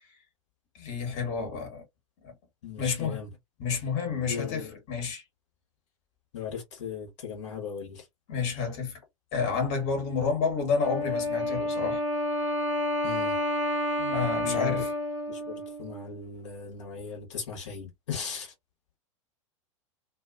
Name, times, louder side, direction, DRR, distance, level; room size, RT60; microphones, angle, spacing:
voice 1, 0.7-1.8 2.2-2.3 2.8-3.2 3.6-5.2 8.3-9.0 9.3-12.0 14.0-14.9, left 5 dB, 40° left, 1.3 m, -30 dB
voice 2, 2.6-3.3 4.3-4.8 6.3-8.1 13.0-13.4 14.4-14.8 15.3-18.5, left 6 dB, 65° left, 1.2 m, -37 dB
Wind instrument woodwind instrument, 10.8-16.2, left 1 dB, 75° right, 0.9 m, -30 dB
2.5 x 2.4 x 2.4 m
figure-of-eight pair, 85°, 17 cm